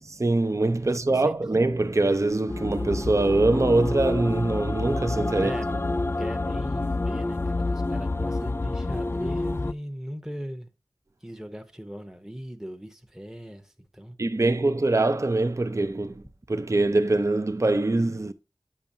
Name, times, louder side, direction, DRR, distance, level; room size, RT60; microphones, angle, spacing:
voice 1, 0.0-5.5 14.2-16.2 16.5-18.3, right 2 dB, 35° right, 0.5 m, -23 dB
sound 1, 2.5-9.7, left 2 dB, 25° left, 0.3 m, -28 dB
voice 2, 5.3-5.8 6.2-10.7 11.2-14.2, equal, 5° right, 0.8 m, -38 dB
8.6 x 6.1 x 2.7 m
wide cardioid pair, 40°, 9 cm